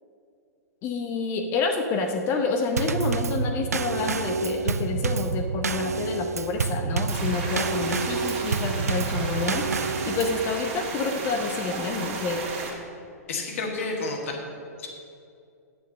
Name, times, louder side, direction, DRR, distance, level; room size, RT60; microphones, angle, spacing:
voice 1, 0.8-9.6 10.1-12.4, left 4 dB, 30° left, 4 dB, 0.7 m, -28 dB
Drum kit / Snare drum / Bass drum, 2.8-10.4, right 5 dB, 70° right, 0.4 m, -28 dB
sound 1, 7.1-12.7, right 4 dB, 40° right, 2.2 m, -34 dB
voice 2, 13.3-14.3 14.8-14.9, left 3 dB, 55° left, 2 dB, 1.7 m, -30 dB
9.2 x 6.9 x 6.4 m, 2.4 s
figure-of-eight pair, 105°, 9 cm